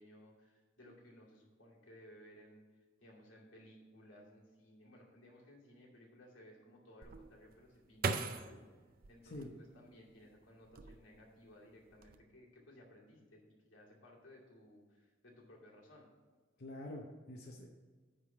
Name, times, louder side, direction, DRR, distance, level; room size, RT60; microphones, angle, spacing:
voice 1, 0.0-8.6 9.1-16.1, equal, 85° left, -3 dB, 2.5 m, -59 dB
sound 1, 7.0-10.1 10.6-11.4 11.7-12.2, right 4 dB, 50° right, 0.5 m, -40 dB
voice 2, 16.6-17.7, left 1 dB, 55° left, 0 dB, 0.8 m, -46 dB
9.7 x 3.8 x 7.1 m, 1.4 s
head